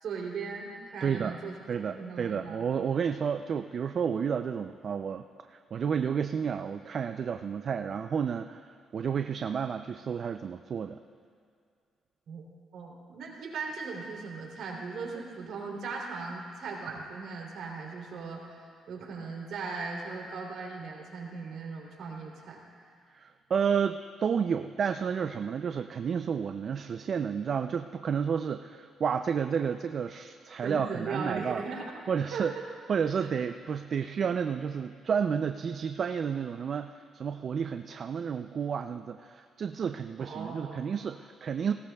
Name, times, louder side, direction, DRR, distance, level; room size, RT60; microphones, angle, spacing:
voice 1, 0.0-1.6 1.9-2.6 12.3-12.4 12.7-22.6 30.6-32.0 32.3-32.5 33.2-33.3 40.2-40.8, right 4 dB, 70° right, -2 dB, 3.0 m, -38 dB
voice 2, 1.0-1.3 1.7-11.0 23.1-31.6 32.1-32.5 32.9-41.7, right 7 dB, 50° right, 8 dB, 0.4 m, -31 dB
19.0 x 17.0 x 2.3 m, 2.3 s
cardioid pair, 90°, 0 cm